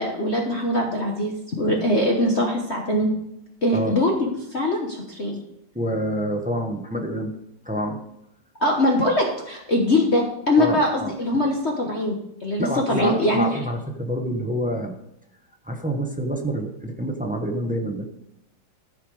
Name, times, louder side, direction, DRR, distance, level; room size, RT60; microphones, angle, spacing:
voice 1, 0.0-3.1 3.6-5.4 8.6-13.4, left 1 dB, 40° left, 0 dB, 1.3 m, -22 dB
voice 2, 5.7-7.3 7.6-8.0 10.6-11.1 12.6-14.9 15.6-18.1, equal, 10° right, 3 dB, 0.5 m, -27 dB
14.0 x 5.7 x 4.9 m, 0.83 s
omnidirectional pair, 2.1 m